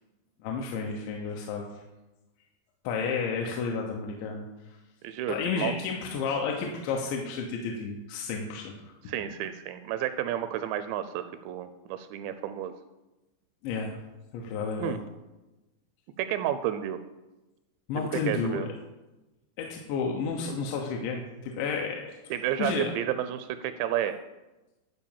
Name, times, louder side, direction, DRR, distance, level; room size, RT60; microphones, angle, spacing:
voice 1, 0.4-1.6 2.8-4.5 5.3-8.9 13.6-14.0 14.3-15.0 17.9-18.6 19.6-22.1 22.6-22.9, left 5 dB, 80° left, 0 dB, 3.2 m, -31 dB
voice 2, 5.0-5.7 9.1-12.7 14.8-15.0 16.2-17.0 18.0-18.7 22.3-24.2, right 11 dB, 85° right, 11 dB, 2.7 m, -31 dB
12.5 x 5.0 x 7.2 m, 1.1 s
omnidirectional pair, 5.4 m